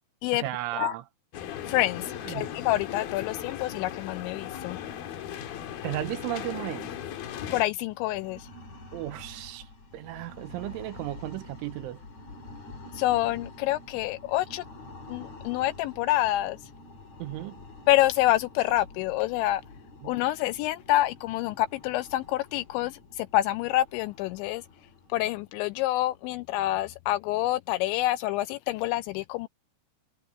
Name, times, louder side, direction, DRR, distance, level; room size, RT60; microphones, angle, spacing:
voice 1, 0.3-1.0 2.3-2.5 5.8-6.9 8.9-12.0 17.2-17.5 20.0-20.2, right 15 dB, 85° right, 3.4 m, -35 dB
sound 1, 1.3-7.6, left 10 dB, 60° left, 2.9 m, -37 dB
voice 2, 1.6-4.8 7.5-8.5 12.9-14.6 15.1-16.6 17.9-19.6 20.0-24.6 25.1-29.5, left 15 dB, 85° left, 2.6 m, -27 dB
sound 2, 7.7-26.4, left 2 dB, 40° left, 3.7 m, -48 dB
omnidirectional pair, 5.6 m